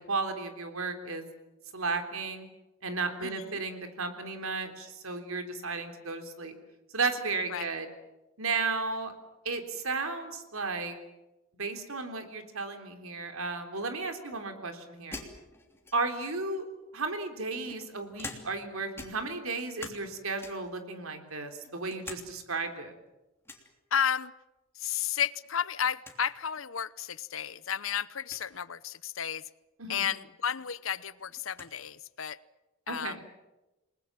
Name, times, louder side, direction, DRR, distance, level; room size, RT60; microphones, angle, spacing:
voice 1, 0.1-1.2 1.7-2.5 2.8-6.5 6.9-7.9 8.4-9.1 9.4-11.0 11.6-15.2 15.9-16.7 16.9-22.9 29.8-30.1 32.9-33.2, right 3 dB, 80° right, 6 dB, 3.6 m, -34 dB
voice 2, 3.2-3.6 7.5-7.7 23.9-24.3 24.8-29.4 29.9-32.4 32.9-33.2, left 8 dB, 65° left, 17 dB, 0.8 m, -32 dB
sound 1, 15.1-16.3 17.1-18.7 18.9-20.1 20.4-20.8 21.3-22.3 22.6-22.7 23.4-23.7 25.1-25.5 25.8-25.9 26.0-26.2 27.0-27.1 28.2-28.5 30.2-30.3 30.6-31.7, left 2 dB, 10° left, 3.1 m, -45 dB
29.5 x 20.5 x 7.5 m, 1.0 s
head